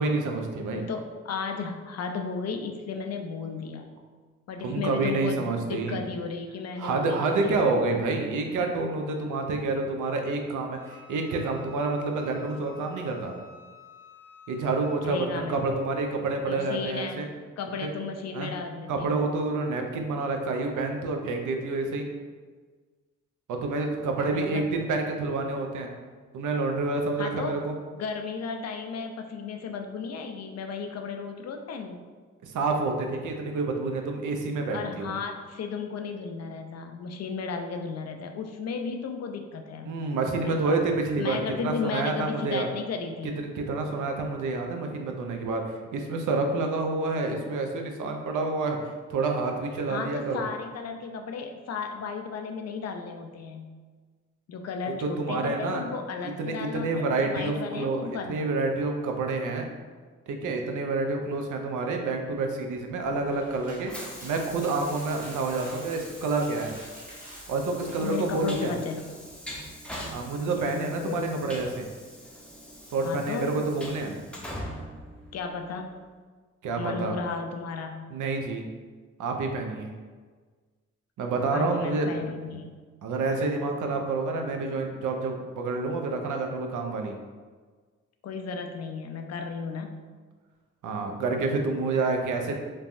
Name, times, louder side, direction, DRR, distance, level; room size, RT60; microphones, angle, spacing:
voice 1, 0.0-0.9 4.6-6.0 6.8-13.3 14.5-17.3 18.3-18.5 18.9-22.1 23.5-25.9 26.3-27.7 32.4-35.1 39.9-42.7 43.4-48.8 49.1-50.4 55.0-55.8 56.4-59.6 60.3-66.8 67.5-68.7 70.1-71.9 72.9-74.2 76.6-77.2 78.1-78.6 79.2-79.9 81.2-82.6 83.0-87.1 90.8-92.5, right 3 dB, 65° right, 3 dB, 0.5 m, -28 dB
voice 2, 0.7-3.9 4.5-7.7 15.0-15.6 16.5-17.2 17.6-19.3 24.2-24.7 27.2-27.6 27.9-32.0 34.7-40.0 40.4-40.7 41.2-43.3 49.9-53.7 54.5-58.4 68.0-69.1 70.6-71.5 73.0-73.7 75.3-76.0 76.8-78.0 81.5-82.7 88.2-90.0, left 5 dB, 50° left, 4 dB, 0.4 m, -34 dB
Wind instrument woodwind instrument, 10.7-15.0, left 4 dB, 85° left, 1.2 m, -51 dB
Train, 62.7-75.9, equal, 5° left, 0.6 m, -43 dB
sound 1, 63.1-68.4, right 1 dB, 25° right, 1.2 m, -49 dB
3.2 x 2.2 x 2.5 m, 1.5 s
supercardioid pair, 55°, 33 cm